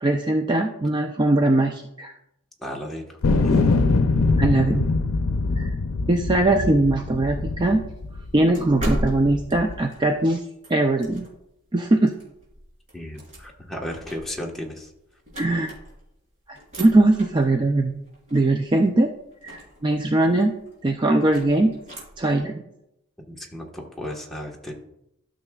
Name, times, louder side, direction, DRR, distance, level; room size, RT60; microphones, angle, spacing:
voice 1, 0.0-2.1 4.4-4.9 5.6-5.7 6.1-7.8 8.3-10.4 10.7-11.3 11.7-12.1 15.4-15.7 16.5-18.0 18.3-19.1 19.4-20.5 20.8-21.7 22.2-22.6, right 2 dB, 20° right, 4 dB, 0.4 m, -20 dB
voice 2, 2.6-3.6 12.9-14.9 23.3-24.7, left 1 dB, ahead, -2 dB, 1.2 m, -35 dB
sound 1, 3.2-8.4 9.0-9.8, left 3 dB, 90° left, 0.5 m, -23 dB
sound 2, 7.1-11.5 12.0-16.2 16.5-22.4, equal, 35° right, 3.3 m, -37 dB
13.0 x 6.3 x 2.3 m, 0.82 s
head